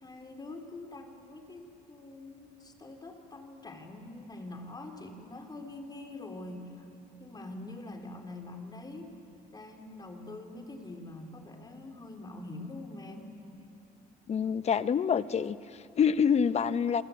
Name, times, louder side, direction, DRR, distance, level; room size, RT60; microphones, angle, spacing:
voice 1, 0.0-6.9 7.2-9.1 9.5-13.4, left 2 dB, 25° left, 4 dB, 3.5 m, -44 dB
voice 2, 14.3-17.0, left 7 dB, 40° left, 13 dB, 0.9 m, -27 dB
28.5 x 23.0 x 8.4 m, 2.6 s
cardioid pair, 110°, 17 cm